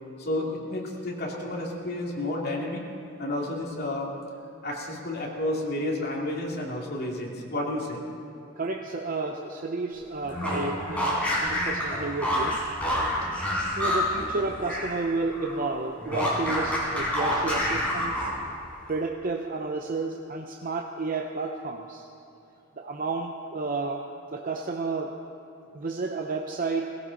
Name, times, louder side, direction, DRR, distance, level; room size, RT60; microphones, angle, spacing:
voice 1, 0.2-2.8 3.2-4.1 4.6-8.0, left 1 dB, 55° left, -2 dB, 2.7 m, -31 dB
voice 2, 8.6-12.6 13.8-18.3 18.9-22.1 22.8-24.0 24.3-25.2 25.7-26.9, right 3 dB, 45° right, 2 dB, 0.7 m, -31 dB
sound 1, 10.2-15.0 15.2-18.5, left 1 dB, 5° left, 4.4 m, -28 dB
18.0 x 16.5 x 4.1 m, 2.7 s
head